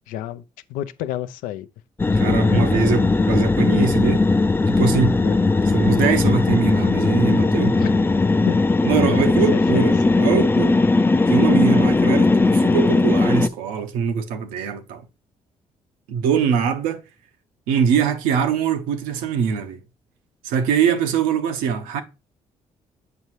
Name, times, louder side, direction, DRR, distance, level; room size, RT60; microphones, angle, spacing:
voice 1, 0.1-0.4 0.7-1.7 2.1-3.0 5.2-5.4 7.7-8.0 8.5-8.6 9.0-9.2 9.5-9.9, left 12 dB, 85° left, 0.5 m, -30 dB
sound 1, 2.0-13.5, left 3 dB, 15° left, 0.4 m, -18 dB
voice 2, 2.1-4.2 4.7-5.2 5.7-7.8 8.8-10.8 11.3-15.0 16.1-17.0 17.7-19.8 20.4-22.0, right 7 dB, 85° right, 0.8 m, -22 dB
7.8 x 5.5 x 3.0 m
supercardioid pair, 55°, 14 cm